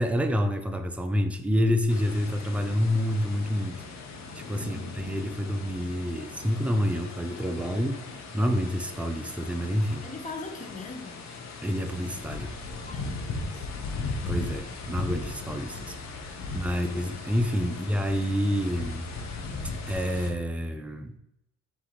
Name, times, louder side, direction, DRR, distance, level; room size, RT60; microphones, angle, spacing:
voice 1, 0.0-3.8 4.5-8.0 8.3-10.1 11.6-12.5 14.3-16.0 16.3-19.1 19.9-21.2, equal, 5° right, 6 dB, 0.4 m, -28 dB
sound 1, 1.9-20.3, left 3 dB, 65° left, 0.8 m, -38 dB
voice 2, 4.6-5.1 10.0-11.3 11.9-12.1 12.8-13.7 16.4-17.0 17.7-17.9, left 3 dB, 25° left, 5 dB, 0.7 m, -42 dB
4.2 x 3.0 x 3.8 m, 0.78 s
cardioid pair, 90°, 30 cm